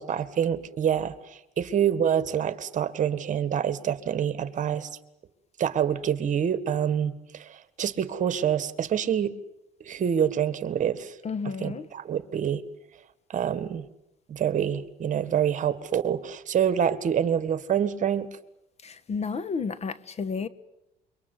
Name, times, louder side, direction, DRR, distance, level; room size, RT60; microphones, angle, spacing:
voice 1, 0.0-4.9 5.6-9.3 9.8-11.2 11.6-12.6 13.3-13.9 14.3-18.3, right 8 dB, 50° right, 1.8 m, -26 dB
voice 2, 11.2-11.9 18.8-20.5, left 5 dB, 40° left, 1.4 m, -31 dB
27.0 x 23.5 x 8.1 m
cardioid pair, 110°, 17 cm